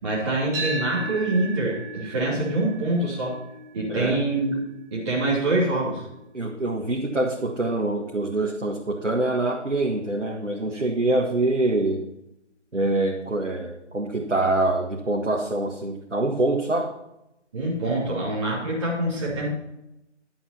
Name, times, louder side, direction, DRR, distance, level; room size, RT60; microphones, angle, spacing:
voice 1, 0.0-3.4 3.7-4.5 4.9-6.0 17.5-19.5, right 2 dB, 25° right, -7 dB, 3.0 m, -25 dB
sound 1, 0.5-8.7, right 2 dB, 10° right, 2.3 m, -38 dB
voice 2, 3.9-4.2 6.3-12.1 12.7-16.9, right 2 dB, 80° right, 1 dB, 1.7 m, -25 dB
11.0 x 9.1 x 4.3 m, 0.87 s
figure-of-eight pair, 155°, 36 cm